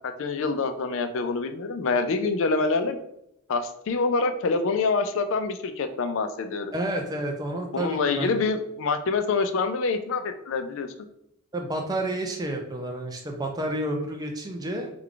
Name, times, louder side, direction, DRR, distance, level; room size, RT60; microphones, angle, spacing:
voice 1, 0.2-3.0 3.5-6.7 7.7-10.9, left 4 dB, 60° left, 8 dB, 0.4 m, -26 dB
voice 2, 6.7-8.3 11.5-14.9, right 1 dB, 15° right, 2 dB, 0.4 m, -30 dB
3.3 x 2.3 x 3.7 m, 0.79 s
head